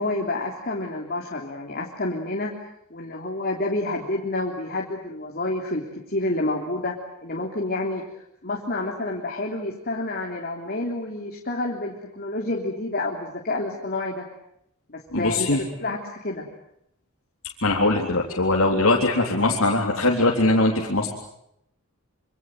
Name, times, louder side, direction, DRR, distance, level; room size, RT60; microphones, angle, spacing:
voice 1, 0.0-2.6 2.9-7.0 7.2-8.0 8.4-14.2 14.9-15.5 15.8-16.5, left 2 dB, 45° left, 0 dB, 3.5 m, -29 dB
voice 2, 15.1-15.6 17.6-21.1, left 2 dB, 70° left, -2 dB, 3.7 m, -21 dB
27.5 x 26.0 x 7.9 m, 0.76 s
head